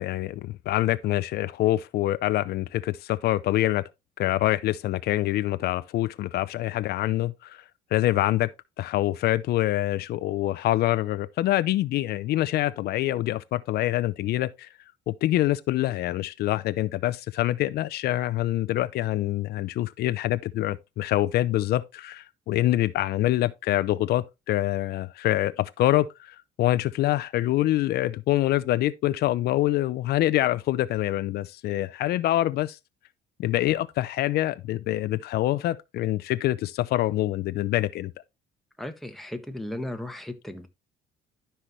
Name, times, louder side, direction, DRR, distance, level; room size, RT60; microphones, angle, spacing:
voice 1, 0.0-3.9 4.2-7.6 7.9-8.5 8.8-14.7 15.1-32.8 33.4-38.1, left 15 dB, 70° left, 0.5 m, -25 dB
voice 2, 38.8-40.7, left 1 dB, ahead, 1.4 m, -35 dB
12.0 x 5.7 x 3.1 m
cardioid pair, 110°, 17 cm